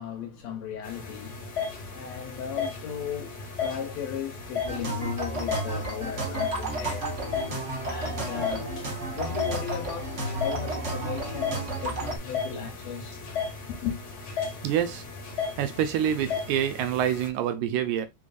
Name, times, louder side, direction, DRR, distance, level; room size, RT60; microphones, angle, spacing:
voice 1, 0.0-1.6 1.9-7.1 7.8-8.7 9.1-13.2 13.7-14.0, left 8 dB, 70° left, 1.7 m, -36 dB
sound 1, 0.8-17.3, left 5 dB, 40° left, 1.6 m, -35 dB
sound 2, 4.6-12.2, right 1 dB, 55° right, 0.8 m, -32 dB
voice 2, 14.6-15.0 15.6-18.1, right 10 dB, 80° right, 1.8 m, -26 dB
4.6 x 3.7 x 2.4 m
omnidirectional pair, 3.6 m